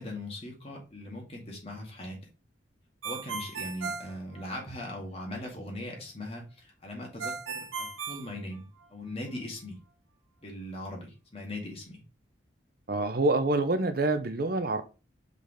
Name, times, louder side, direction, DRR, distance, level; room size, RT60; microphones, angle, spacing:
voice 1, 0.0-2.2 3.0-9.8 10.4-12.0, left 1 dB, 30° left, 2.2 m, -40 dB
Ringtone, 3.0-4.9 7.2-9.1, right 5 dB, 85° right, 1.0 m, -37 dB
voice 2, 12.9-14.8, right 2 dB, 50° right, 0.7 m, -26 dB
5.3 x 4.0 x 5.0 m
head